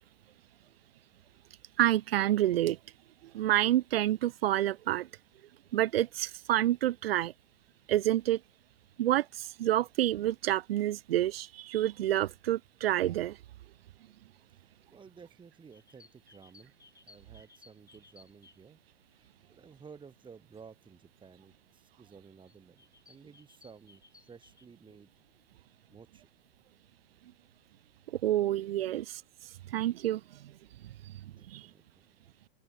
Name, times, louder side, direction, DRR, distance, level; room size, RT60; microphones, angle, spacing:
voice 1, 1.8-2.8 3.3-5.1 5.7-7.3 7.9-8.4 9.0-13.4 28.2-29.2 29.7-30.5 30.8-31.7, right 13 dB, 75° right, 0.5 m, -28 dB
voice 2, 14.5-16.7 17.0-18.8 19.2-25.4 25.9-26.3 28.8-29.0 30.9-31.1 31.4-32.0, right 6 dB, 15° right, 3.1 m, -55 dB
sound 1, 15.6-19.7 20.2-20.3 21.3-21.4 21.9-22.2 22.5-24.7, left 4 dB, 10° left, 7.8 m, -61 dB
open air
hypercardioid pair, 110°, 30 cm